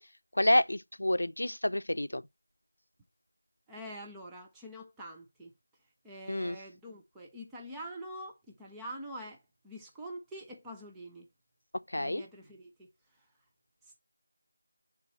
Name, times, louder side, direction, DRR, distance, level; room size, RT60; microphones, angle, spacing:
voice 1, 0.3-2.2 6.3-6.6 11.9-12.2, left 1 dB, 75° left, 0.5 m, -28 dB
voice 2, 3.7-5.5 6.0-11.3 11.9-13.3 13.8-14.0, equal, 5° right, 0.4 m, -46 dB
8.8 x 3.7 x 3.1 m
figure-of-eight pair, 175°, 0 cm